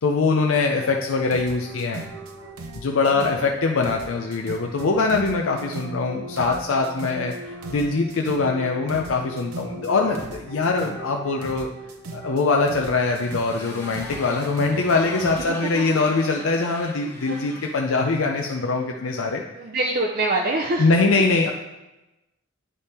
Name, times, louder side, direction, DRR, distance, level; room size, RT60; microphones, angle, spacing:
voice 1, 0.0-2.0 2.8-11.7 12.1-19.4 20.8-21.5, left 3 dB, 65° left, 1 dB, 0.5 m, -23 dB
sound 1, 0.8-15.4, right 2 dB, 80° right, 0.8 m, -38 dB
voice 2, 3.1-3.5 15.5-15.8 17.3-17.4 19.5-20.9, right 2 dB, 45° right, 0 dB, 0.5 m, -25 dB
Motorcycle, 12.4-18.8, left 1 dB, 10° left, 1.1 m, -41 dB
9.7 x 3.4 x 4.2 m, 1.0 s
head